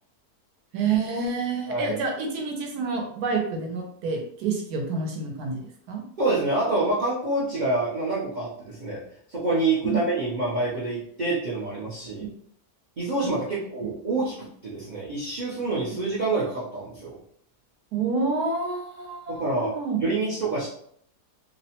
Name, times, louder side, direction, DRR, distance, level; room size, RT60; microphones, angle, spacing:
voice 1, 0.7-6.0 9.8-10.0 12.2-12.3 17.9-20.0, right 4 dB, 80° right, 2 dB, 1.1 m, -28 dB
voice 2, 1.7-2.0 6.2-9.0 9.3-12.3 13.0-14.3 14.6-17.1 19.3-19.7 20.0-20.7, right 2 dB, 55° right, -8 dB, 0.5 m, -27 dB
2.8 x 2.1 x 2.8 m, 0.65 s
omnidirectional pair, 1.7 m